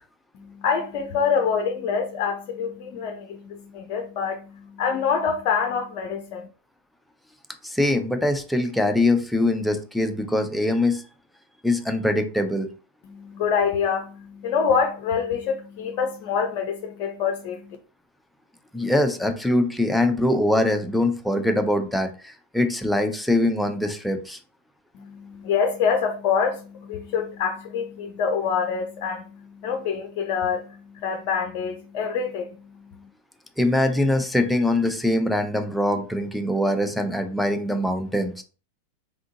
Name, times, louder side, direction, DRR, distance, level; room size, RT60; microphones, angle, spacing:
voice 1, 0.3-6.5 13.0-17.8 24.9-33.1, left 6 dB, 45° left, 0.5 m, -26 dB
voice 2, 7.6-11.0 11.6-12.7 18.7-24.4 33.6-38.4, left 1 dB, ahead, 0.6 m, -23 dB
3.6 x 3.4 x 2.7 m
figure-of-eight pair, 90°, 0 cm